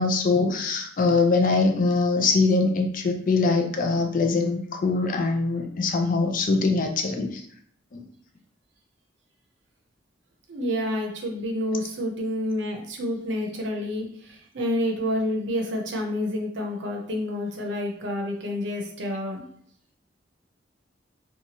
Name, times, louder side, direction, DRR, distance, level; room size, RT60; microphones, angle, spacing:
voice 1, 0.0-7.4 7.9-8.0, left 3 dB, 45° left, 4 dB, 0.4 m, -23 dB
voice 2, 10.5-19.4, left 1 dB, 70° right, 1 dB, 0.6 m, -29 dB
2.8 x 2.3 x 2.8 m, 0.63 s
head